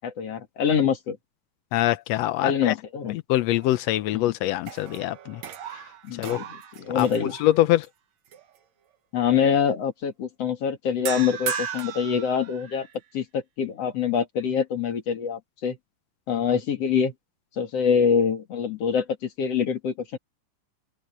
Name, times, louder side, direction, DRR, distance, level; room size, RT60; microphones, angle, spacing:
voice 1, 0.0-1.2 2.4-3.2 4.1-4.3 6.0-6.5 6.8-7.3 9.1-12.9 13.1-15.8 16.3-17.1 17.6-20.2, left 7 dB, 50° left, 2.9 m, -25 dB
voice 2, 1.7-2.7 3.1-5.4 6.2-6.4 6.9-7.9, left 14 dB, 90° left, 1.5 m, -24 dB
sound 1, 3.5-4.2 4.6-7.9 8.3-8.6 11.1-13.0, right 8 dB, 60° right, 2.6 m, -36 dB
open air
omnidirectional pair, 3.8 m